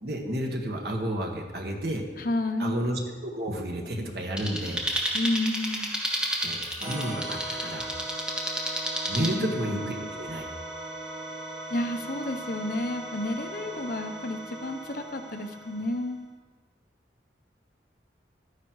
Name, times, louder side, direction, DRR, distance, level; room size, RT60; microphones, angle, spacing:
voice 1, 0.0-2.0 2.6-4.8 6.4-7.9 9.1-10.4, right 1 dB, 60° right, 1 dB, 1.8 m, -31 dB
voice 2, 2.2-2.8 5.1-5.9 9.1-10.1 11.7-16.2, left 1 dB, 50° left, 6 dB, 0.9 m, -31 dB
sound 1, 4.4-9.3, equal, 5° right, 1.2 m, -31 dB
sound 2, 6.8-16.2, right 1 dB, 30° right, 3.0 m, -39 dB
13.0 x 9.9 x 4.8 m, 1.3 s
head